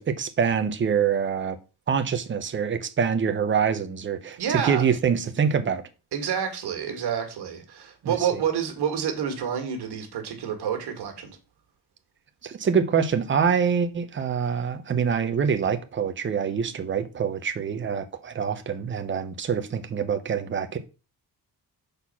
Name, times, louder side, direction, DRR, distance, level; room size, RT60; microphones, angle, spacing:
voice 1, 0.0-1.6 1.9-5.8 8.0-8.3 12.4-20.8, right 7 dB, 30° right, 0.8 m, -25 dB
voice 2, 4.4-4.8 6.1-11.4, right 8 dB, 75° right, 2.1 m, -28 dB
6.7 x 4.2 x 5.7 m
wide cardioid pair, 175°, 40 cm